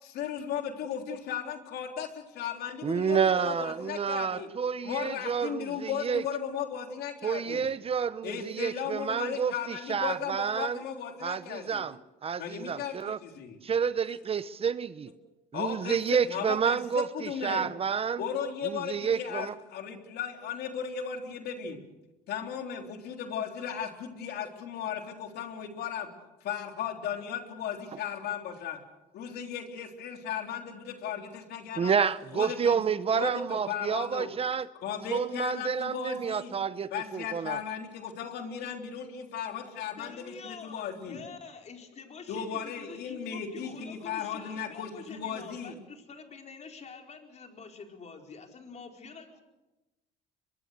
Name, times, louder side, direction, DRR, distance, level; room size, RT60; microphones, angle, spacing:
voice 1, 0.0-4.5 4.8-7.7 8.2-11.8 12.4-13.6 15.5-16.8 17.1-17.6 18.2-21.8 22.3-26.1 26.4-28.8 29.1-32.0 32.3-32.8 33.1-34.3 34.8-36.6 36.9-41.2 42.3-45.7, left 8 dB, 75° left, 4 dB, 3.6 m, -36 dB
voice 2, 2.8-6.2 7.2-10.8 11.2-13.2 13.6-15.1 15.5-18.2 18.6-19.5 31.8-34.7 35.1-37.6, right 6 dB, 35° right, 15 dB, 0.8 m, -29 dB
voice 3, 40.0-49.4, left 5 dB, 40° left, 3 dB, 4.5 m, -47 dB
23.0 x 23.0 x 6.7 m, 1.0 s
cardioid pair, 110°, 17 cm